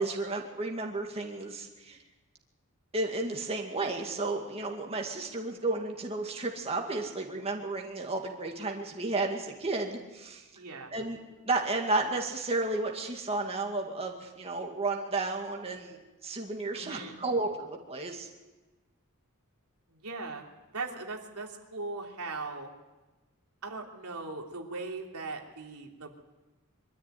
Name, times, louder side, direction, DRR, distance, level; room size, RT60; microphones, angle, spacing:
voice 1, 0.0-2.0 2.9-10.4 10.9-11.2 11.4-18.3, right 2 dB, 25° right, 1 dB, 2.2 m, -32 dB
voice 2, 10.5-10.9 16.7-17.2 19.9-20.4 20.7-22.7 23.6-26.2, right 3 dB, 90° right, 1 dB, 3.1 m, -39 dB
23.5 x 13.5 x 9.4 m, 1.1 s
head